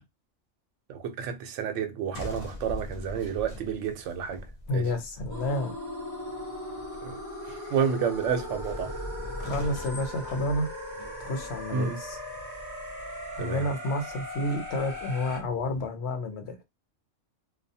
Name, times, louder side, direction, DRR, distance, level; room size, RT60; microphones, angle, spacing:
voice 1, 0.9-4.4 4.7-4.9 7.0-7.2 7.7-8.9 11.7-12.0 13.4-13.6, right 7 dB, 75° right, 0.9 m, -30 dB
sound 1, 2.1-15.9, left 1 dB, 45° left, 0.4 m, -43 dB
voice 2, 4.7-5.7 7.5-7.8 9.4-10.7 11.2-12.2 13.4-16.6, left 1 dB, 65° left, 0.9 m, -30 dB
sound 2, 5.3-15.4, left 1 dB, 20° right, 0.7 m, -39 dB
2.3 x 2.3 x 2.6 m
omnidirectional pair, 1.3 m